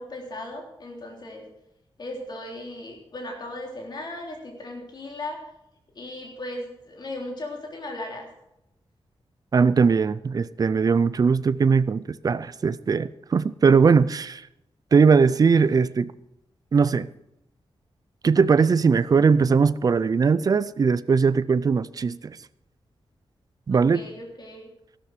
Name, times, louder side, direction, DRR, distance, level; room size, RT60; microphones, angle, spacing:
voice 1, 0.0-1.4 2.0-5.4 6.0-8.3 23.7-24.7, left 1 dB, 45° left, 3.6 m, -37 dB
voice 2, 9.5-14.4 14.9-16.1 16.7-17.1 18.2-22.4 23.7-24.0, right 5 dB, 40° right, 0.4 m, -20 dB
14.0 x 12.5 x 5.0 m
wide cardioid pair, 170°, 10 cm